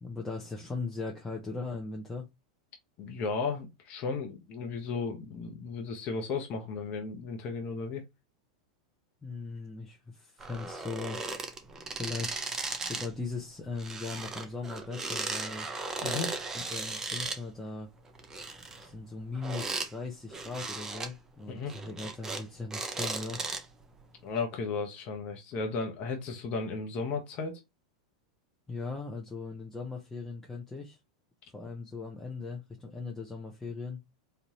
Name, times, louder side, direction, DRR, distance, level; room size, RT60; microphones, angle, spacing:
voice 1, 0.0-2.3 9.2-11.2 11.9-15.7 16.4-17.9 18.8-23.4 28.7-31.0 31.5-34.0, left 3 dB, 10° left, 0.9 m, -39 dB
voice 2, 3.0-8.0 16.0-16.4 21.5-21.7 24.2-27.6, left 4 dB, 45° left, 1.1 m, -34 dB
sound 1, 10.4-13.1 13.4-17.4 18.1-19.9 20.3-21.1 21.6-22.4 22.7-23.8 24.4-24.5, right 3 dB, 15° right, 0.8 m, -36 dB
3.9 x 2.6 x 3.1 m
hypercardioid pair, 100°, 3 cm